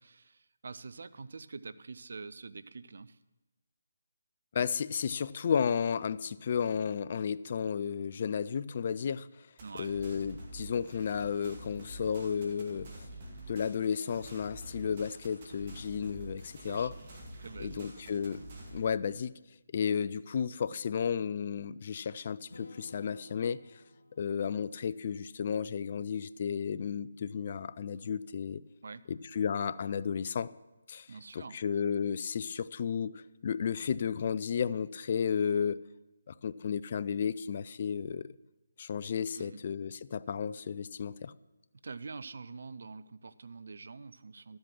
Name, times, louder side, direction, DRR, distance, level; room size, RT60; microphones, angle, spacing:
voice 1, 0.0-3.2 9.6-9.9 16.7-16.9 17.4-18.1 28.8-29.0 31.1-31.6 39.4-39.6 41.8-44.6, right 4 dB, 60° right, 15 dB, 0.5 m, -45 dB
voice 2, 4.5-9.3 9.8-12.9 13.5-16.9 17.6-18.4 18.7-19.3 19.7-23.6 24.2-28.6 29.1-30.5 30.9-31.1 31.3-35.8 36.3-38.3 38.8-41.3, left 7 dB, 45° left, 18 dB, 0.3 m, -33 dB
sound 1, 9.6-18.8, right 1 dB, 40° right, 2.2 m, -47 dB
Strum, 22.5-26.4, left 2 dB, 65° left, 1.3 m, -57 dB
12.0 x 7.9 x 5.9 m, 1.0 s
figure-of-eight pair, 150°, 0 cm